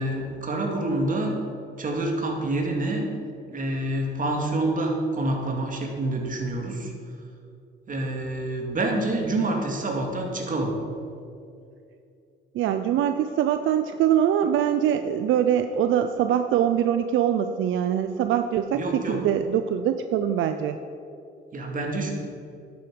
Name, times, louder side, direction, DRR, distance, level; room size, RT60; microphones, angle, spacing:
voice 1, 0.0-1.4 1.8-3.0 3.5-6.9 7.9-10.7 18.7-19.2 21.5-22.1, right 2 dB, 45° right, 1 dB, 2.3 m, -27 dB
voice 2, 12.5-20.8, right 9 dB, 80° right, 8 dB, 0.5 m, -23 dB
10.5 x 8.9 x 5.2 m, 2.6 s
cardioid pair, 90°, 20 cm